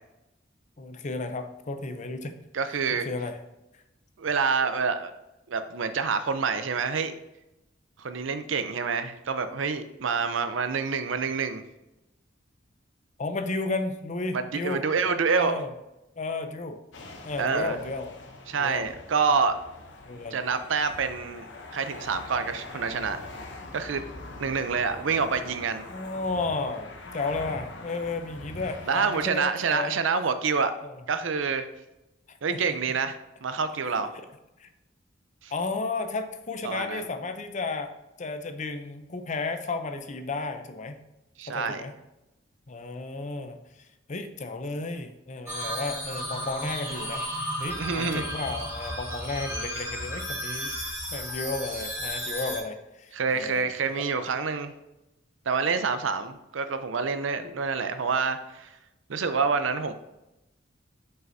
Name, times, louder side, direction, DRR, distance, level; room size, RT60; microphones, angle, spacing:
voice 1, 0.8-2.3 2.9-3.4 13.2-14.8 15.4-15.7 16.2-16.8 17.2-18.1 18.6-18.9 20.1-20.4 25.9-30.0 30.8-31.0 32.3-32.6 34.6-34.7 35.5-37.9 38.2-41.0 41.5-41.9 42.7-43.6 44.1-47.3 47.6-50.7 51.1-53.7 54.0-54.2, left 3 dB, 40° left, 7 dB, 0.6 m, -33 dB
voice 2, 2.5-3.1 4.2-5.1 5.5-7.1 8.0-11.6 14.3-15.6 17.4-17.8 18.5-19.6 20.3-23.2 23.7-24.0 24.4-25.8 28.9-30.7 31.1-31.7 32.4-34.1 35.4-35.5 36.6-37.1 41.4-41.8 47.8-48.2 53.1-54.7 55.5-58.7 59.1-59.9, right 5 dB, 80° right, 10 dB, 0.6 m, -27 dB
sound 1, 16.9-29.3, left 2 dB, 65° left, 0.8 m, -43 dB
sound 2, 45.5-52.6, equal, 15° right, 2.1 m, -34 dB
7.5 x 5.6 x 2.7 m, 0.95 s
head